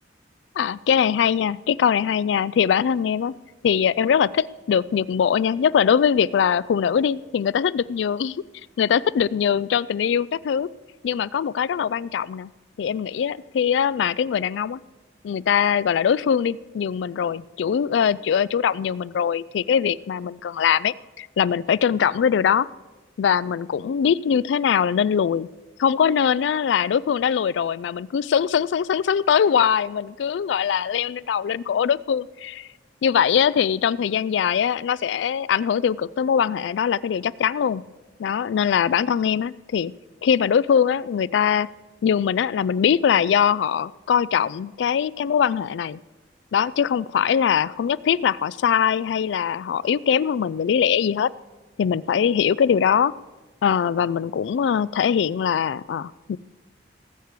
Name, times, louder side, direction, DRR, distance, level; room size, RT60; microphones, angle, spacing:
voice 1, 0.6-3.3 3.6-8.4 8.8-10.7 11.0-12.5 12.8-14.8 15.2-22.7 23.2-25.5 25.8-32.7 33.0-37.8 38.2-39.9 40.2-41.7 42.0-46.0 46.5-51.3 51.8-53.1 53.6-56.4, left 8 dB, 75° left, 21 dB, 0.3 m, -22 dB
18.5 x 8.3 x 4.6 m, 1.2 s
head